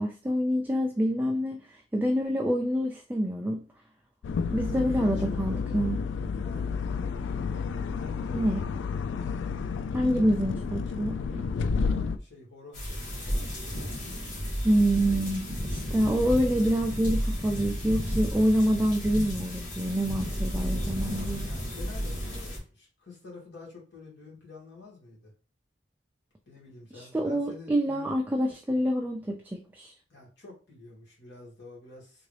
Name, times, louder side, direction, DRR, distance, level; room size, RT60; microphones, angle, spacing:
voice 1, 0.0-3.6 4.5-6.0 8.3-8.6 9.9-11.4 14.6-21.5 26.9-29.9, equal, 10° right, 1 dB, 0.3 m, -27 dB
sound 1, 4.2-12.2, left 5 dB, 90° left, 0.3 m, -31 dB
voice 2, 4.7-6.9 8.0-8.9 11.8-14.1 21.4-25.3 26.5-28.1 30.1-32.3, left 3 dB, 75° left, -4 dB, 2.1 m, -48 dB
sound 2, 12.7-22.6, equal, 45° left, 1.8 m, -32 dB
3.6 x 2.6 x 3.3 m, 0.35 s
head